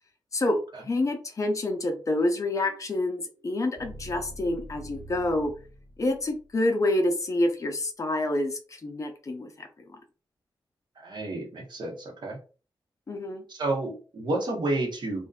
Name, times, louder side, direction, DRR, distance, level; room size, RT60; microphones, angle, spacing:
voice 1, 0.3-5.5 6.0-9.7 13.1-13.4, left 1 dB, 40° left, 4 dB, 0.5 m, -27 dB
sound 1, 2.6-6.6, right 1 dB, 5° right, 1.1 m, -46 dB
voice 2, 11.0-12.4 13.5-15.3, right 2 dB, 60° right, 1 dB, 0.8 m, -30 dB
2.5 x 2.1 x 2.3 m, 0.35 s
wide cardioid pair, 100°, 8 cm